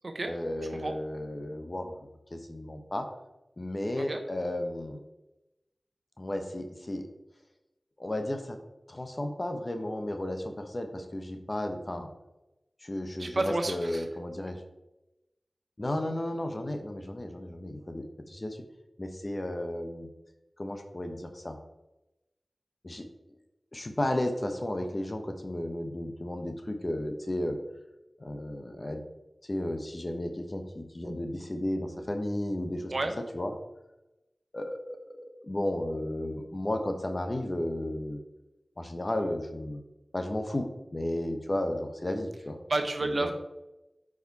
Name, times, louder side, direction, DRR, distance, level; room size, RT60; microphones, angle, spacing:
voice 1, 0.3-1.9 2.3-3.1 3.6-5.0 6.2-7.0 8.0-8.6 8.9-12.1 12.8-14.6 15.8-18.6 19.0-20.1 20.6-21.6 22.8-23.1 23.7-27.6 28.2-29.0 29.4-32.9 33.3-33.5 34.5-38.2 38.8-39.8 40.1-42.6 43.0-43.3, left 1 dB, 40° left, 6 dB, 1.0 m, -33 dB
voice 2, 13.2-14.0 32.9-33.1 42.7-43.3, right 2 dB, 60° right, 6 dB, 0.9 m, -30 dB
9.0 x 4.9 x 4.2 m, 0.96 s
wide cardioid pair, 55°, 0 cm